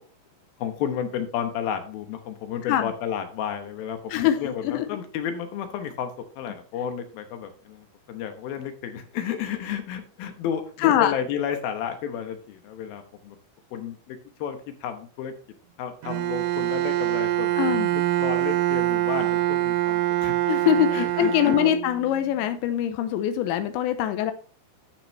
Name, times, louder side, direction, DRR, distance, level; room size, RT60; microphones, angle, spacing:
voice 1, 0.6-13.4 13.7-15.3 15.8-20.3 20.9-21.8, left 8 dB, 70° left, 2.4 m, -32 dB
voice 2, 4.1-4.9 10.8-11.2 17.6-17.9 20.5-24.3, left 11 dB, 85° left, 3.0 m, -23 dB
Bowed string instrument, 16.0-22.2, right 16 dB, 85° right, 3.0 m, -25 dB
12.0 x 6.9 x 3.1 m
omnidirectional pair, 5.3 m